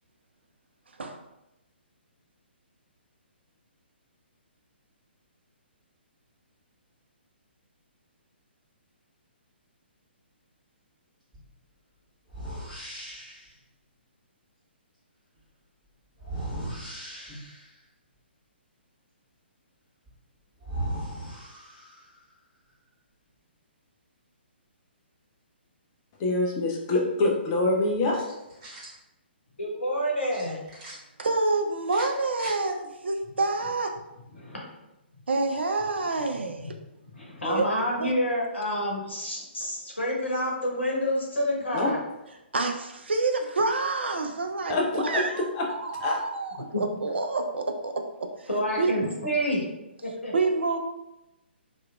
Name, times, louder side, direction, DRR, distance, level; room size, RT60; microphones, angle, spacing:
sound 1, 11.3-11.5 12.3-13.5 16.2-17.8 20.1-20.2 20.6-22.2, right 1 dB, 5° right, 1.2 m, -37 dB
voice 1, 26.2-28.2 41.7-41.9 44.7-44.9 45.1-45.2 45.5-45.7 46.0-46.2, left 2 dB, 25° left, 0 dB, 0.5 m, -25 dB
sound 2, 28.1-29.0 30.3-30.9 31.8-32.6, right 1 dB, 30° right, 1.2 m, -43 dB
voice 2, 29.6-30.6 34.4-34.7 36.6-36.7 37.1-42.0 46.7-46.8 48.5-49.6 50.0-50.3, equal, 80° left, -2 dB, 0.9 m, -28 dB
voice 3, 31.2-33.9 35.3-36.7 37.5-38.1 42.5-48.3 48.8-49.1 50.3-50.8, right 3 dB, 70° right, 4 dB, 0.4 m, -28 dB
2.8 x 2.5 x 2.2 m, 0.92 s
figure-of-eight pair, 130°, 6 cm